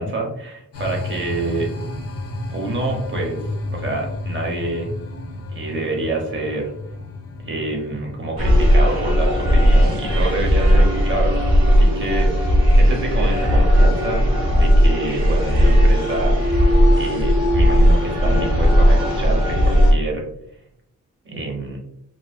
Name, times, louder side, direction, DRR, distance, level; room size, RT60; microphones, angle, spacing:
voice 1, 0.0-1.7 2.5-3.4 3.7-5.0 5.5-6.7 7.4-14.2 14.5-16.3 17.0-20.2 21.2-21.8, right 2 dB, 35° right, 1 dB, 0.7 m, -27 dB
sound 1, 0.7-14.0, left 2 dB, 45° left, 0.5 m, -34 dB
sound 2, 8.4-19.9, equal, 60° right, 0.9 m, -16 dB
2.4 x 2.2 x 2.2 m, 0.73 s
wide cardioid pair, 135°, 36 cm